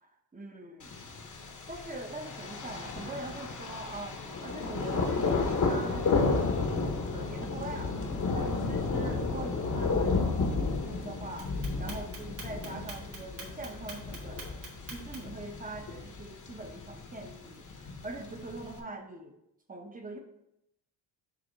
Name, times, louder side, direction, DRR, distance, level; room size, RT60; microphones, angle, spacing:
voice 1, 0.3-1.0 1.7-6.7 7.1-7.9 8.3-11.5 11.8-19.3 19.7-20.2, right 2 dB, 20° right, 3 dB, 0.9 m, -43 dB
Thunder, 0.8-18.8, left 4 dB, 40° left, 1.1 m, -32 dB
Clock, 11.4-15.4, right 4 dB, 80° right, 1.9 m, -44 dB
6.8 x 3.3 x 5.2 m, 0.82 s
wide cardioid pair, 140°, 45 cm